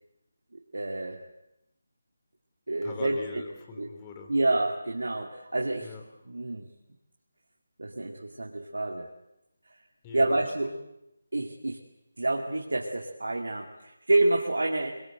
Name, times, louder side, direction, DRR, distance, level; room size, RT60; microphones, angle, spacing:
voice 1, 0.7-1.2 2.7-3.2 3.8-3.9 4.3-5.9 6.3-6.7 7.8-9.1 10.1-10.7 11.3-11.8 12.2-14.9, right 2 dB, 70° right, 1 dB, 2.5 m, -28 dB
voice 2, 2.8-4.3 5.8-6.0 10.0-10.7, left 4 dB, 20° left, 3 dB, 3.6 m, -42 dB
25.0 x 22.5 x 7.9 m, 0.87 s
figure-of-eight pair, 155°, 0 cm